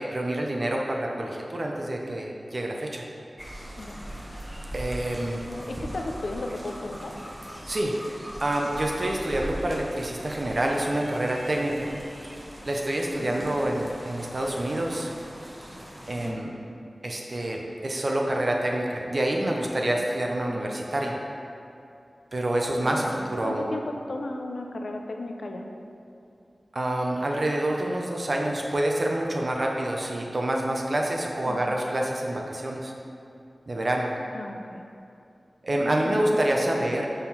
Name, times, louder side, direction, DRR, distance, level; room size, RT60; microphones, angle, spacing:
voice 1, 0.0-3.1 4.7-5.4 7.7-7.9 8.4-11.9 12.6-15.1 16.1-16.5 17.0-21.2 22.3-23.6 26.7-32.9 33.7-34.1 35.6-37.1, right 1 dB, 55° right, 0 dB, 0.8 m, -27 dB
sound 1, 3.4-16.3, equal, 15° right, 1.2 m, -40 dB
voice 2, 3.8-4.1 5.5-7.1 13.2-13.5 16.2-16.5 20.4-20.6 22.8-25.7 31.5-31.6 34.3-34.8 35.7-36.4 36.8-37.0, left 2 dB, 75° left, 3 dB, 0.6 m, -36 dB
7.0 x 3.8 x 5.6 m, 2.6 s
cardioid pair, 45°, 0 cm